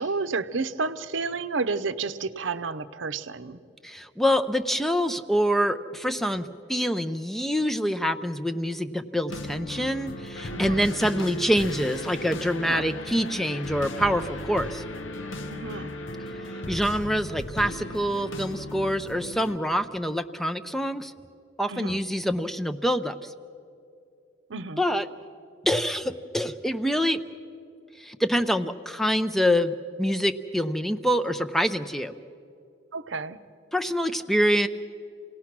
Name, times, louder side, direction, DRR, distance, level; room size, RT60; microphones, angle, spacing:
voice 1, 0.0-3.6 10.5-10.9 12.6-12.9 15.5-15.9 21.7-22.0 24.5-24.8 32.9-33.4, right 4 dB, 75° right, 12 dB, 0.7 m, -31 dB
voice 2, 3.8-14.8 16.7-21.1 21.6-23.3 24.8-25.1 25.6-27.2 28.0-32.1 33.7-34.7, equal, ahead, 8 dB, 0.5 m, -26 dB
sound 1, 9.3-19.6, left 1 dB, 80° left, 0.9 m, -36 dB
28.5 x 18.0 x 6.0 m, 2.5 s
head